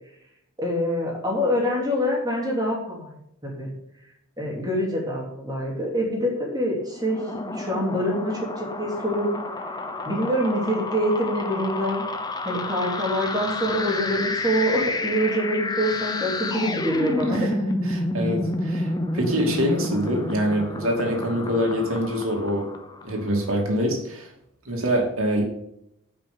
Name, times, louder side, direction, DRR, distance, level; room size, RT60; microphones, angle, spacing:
voice 1, 0.6-3.1 3.4-3.7 4.4-7.2 7.5-9.4 10.0-12.0 12.4-17.5, equal, 20° right, -2 dB, 3.0 m, -25 dB
sound 1, 6.9-23.3, left 2 dB, 20° left, 0.8 m, -30 dB
voice 2, 17.8-22.7 23.0-24.3 24.6-25.4, equal, 80° right, 0 dB, 2.6 m, -25 dB
10.0 x 5.8 x 6.7 m, 0.77 s
head